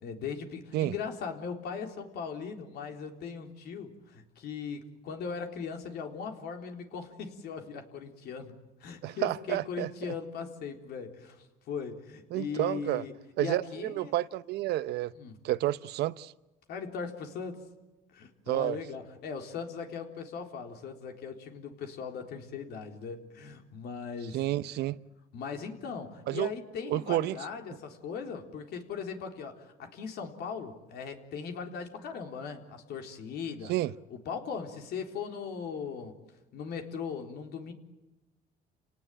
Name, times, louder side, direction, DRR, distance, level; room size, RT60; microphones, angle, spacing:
voice 1, 0.0-8.5 8.8-14.1 15.2-15.4 16.7-17.7 18.1-24.4 25.3-33.7 34.1-36.1 36.5-37.7, left 6 dB, 70° left, 3.9 m, -39 dB
voice 2, 9.0-10.2 12.3-13.0 13.4-15.1 15.4-16.3 18.5-18.8 24.3-25.0 26.3-26.5 26.9-27.4 33.7-33.9, right 15 dB, 80° right, 0.8 m, -30 dB
29.5 x 18.5 x 9.1 m
cardioid pair, 110°, 17 cm